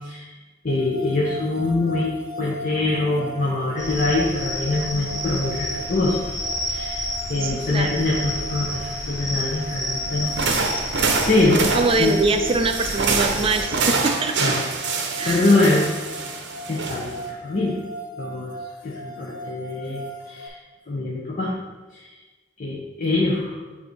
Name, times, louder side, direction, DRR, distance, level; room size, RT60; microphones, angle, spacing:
voice 1, 0.6-6.2 6.7-7.0 7.3-10.3 10.7-10.8 11.3-11.7 12.0-12.2 14.4-14.6 15.2-15.9 16.7-17.7 18.2-18.5 18.8-20.6 20.9-21.5 22.6-23.5, left 2 dB, 45° left, -4 dB, 0.8 m, -23 dB
sound 1, 0.7-20.5, right 1 dB, 85° left, 0.7 m, -37 dB
sound 2, 3.8-13.6, equal, 15° left, 1.8 m, -31 dB
voice 2, 7.4-8.0 11.7-14.3 15.2-15.5, right 3 dB, 30° right, 6 dB, 0.4 m, -23 dB
sound 3, 10.3-17.3, right 4 dB, 65° right, 0.7 m, -26 dB
7.5 x 2.8 x 4.5 m, 1.3 s
head